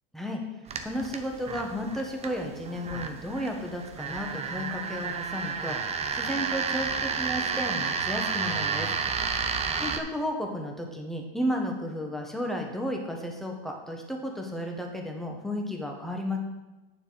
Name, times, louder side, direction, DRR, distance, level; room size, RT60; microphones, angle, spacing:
sound 1, 0.7-10.0, right 5 dB, 20° right, 0.7 m, -31 dB
voice 1, 0.8-8.9 9.8-16.4, equal, ahead, 1 dB, 1.4 m, -33 dB
8.4 x 7.1 x 4.1 m, 1.1 s
supercardioid pair, 120°, 31 cm